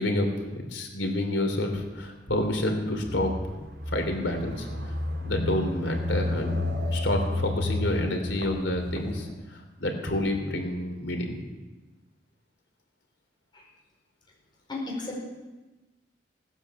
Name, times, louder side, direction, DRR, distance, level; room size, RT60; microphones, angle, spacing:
voice 1, 0.0-3.5 3.9-4.7 5.2-11.4, left 1 dB, 90° left, 3 dB, 3.2 m, -29 dB
sound 1, 3.0-9.3, left 2 dB, 65° right, 2.8 m, -31 dB
voice 2, 14.7-15.2, left 2 dB, 25° left, -2 dB, 4.5 m, -34 dB
18.0 x 10.0 x 7.2 m, 1.2 s
head